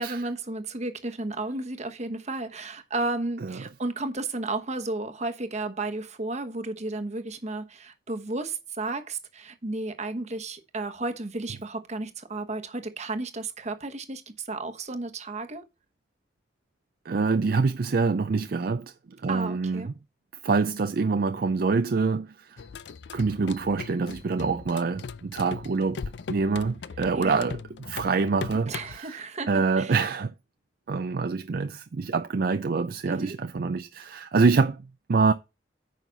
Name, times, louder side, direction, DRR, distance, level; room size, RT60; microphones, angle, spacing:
voice 1, 0.0-15.6 19.3-19.9 27.1-27.5 28.7-30.0 33.1-33.3, right 2 dB, 40° right, 1.1 m, -33 dB
voice 2, 17.1-18.9 19.2-19.9 20.4-22.6 23.1-26.0 26.3-27.6 27.9-29.2 29.5-30.3 30.9-35.3, right 4 dB, 55° right, 0.4 m, -25 dB
sound 1, 22.6-29.0, left 5 dB, 85° left, 0.5 m, -39 dB
9.3 x 5.7 x 3.9 m
head